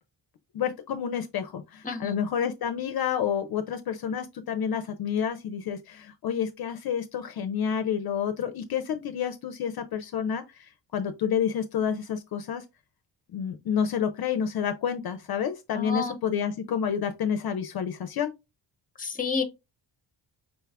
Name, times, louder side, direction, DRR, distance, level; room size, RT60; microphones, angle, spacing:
voice 1, 0.5-12.6 13.3-18.3, left 8 dB, 55° left, 0.5 m, -29 dB
voice 2, 15.7-16.1 19.0-19.4, left 5 dB, 20° left, 0.7 m, -30 dB
5.2 x 2.3 x 3.3 m
wide cardioid pair, 140°, 45 cm